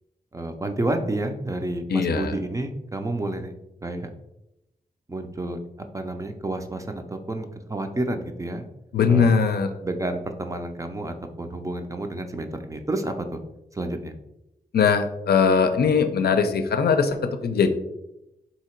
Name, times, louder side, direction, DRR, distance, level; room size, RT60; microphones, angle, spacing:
voice 1, 0.3-3.5 3.8-4.1 5.1-5.6 5.9-8.7 9.1-9.3 9.8-13.4 13.7-14.1, right 2 dB, 20° right, 6 dB, 0.4 m, -30 dB
voice 2, 1.9-2.3 8.9-9.7 14.7-17.7, left 6 dB, 85° left, 7 dB, 0.5 m, -20 dB
3.8 x 2.8 x 4.3 m, 0.89 s
wide cardioid pair, 125°, 16 cm